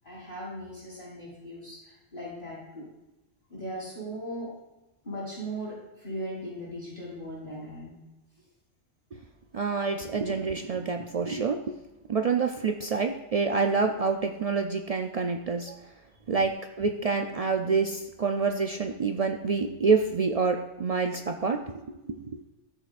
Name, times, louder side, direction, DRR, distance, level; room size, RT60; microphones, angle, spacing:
voice 1, 0.0-2.8 3.5-4.5 5.0-8.0, equal, 45° left, -12 dB, 3.6 m, -38 dB
voice 2, 9.5-11.8 12.1-15.8 16.3-22.4, right 4 dB, 70° right, 5 dB, 0.3 m, -27 dB
14.0 x 6.3 x 2.5 m, 0.99 s
omnidirectional pair, 1.2 m